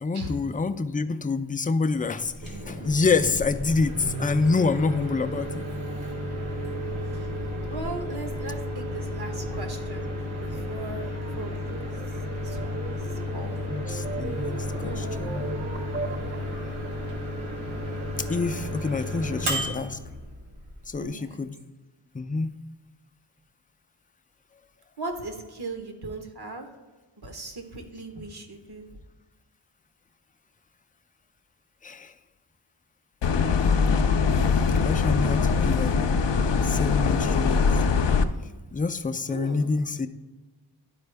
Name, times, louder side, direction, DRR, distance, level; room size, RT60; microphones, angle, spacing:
voice 1, 0.0-2.3 2.6-5.6 13.7-15.6 16.1-16.2 18.2-20.0 20.9-21.5 22.1-22.5 31.8-32.1 34.8-36.0 36.6-37.7 38.7-40.1, left 4 dB, 20° left, 10 dB, 0.4 m, -27 dB
Microwave oven, 2.3-21.0, left 1 dB, 85° right, 1.8 m, -33 dB
voice 2, 7.7-11.8 12.1-13.6 14.8-15.2 21.0-21.4 25.0-26.7 27.2-28.9 39.3-39.8, right 2 dB, 55° right, 4 dB, 1.2 m, -38 dB
sound 1, 9.7-16.7, right 3 dB, 25° right, 0.8 m, -40 dB
sound 2, 33.2-38.2, left 5 dB, 65° left, 0.6 m, -22 dB
11.5 x 4.4 x 3.4 m, 1.3 s
wide cardioid pair, 70°, 46 cm